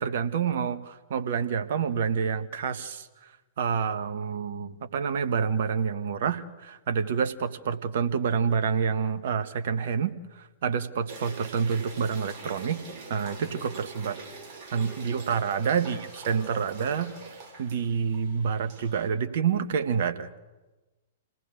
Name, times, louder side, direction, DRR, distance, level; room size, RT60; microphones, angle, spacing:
voice 1, 0.0-3.1 3.6-12.8 13.1-14.2 14.7-17.1 17.6-20.3, right 6 dB, 55° right, 9 dB, 1.6 m, -28 dB
sound 1, 11.1-19.1, right 3 dB, 40° right, 6.2 m, -44 dB
28.0 x 18.0 x 6.7 m, 1.2 s
figure-of-eight pair, 105°, 0 cm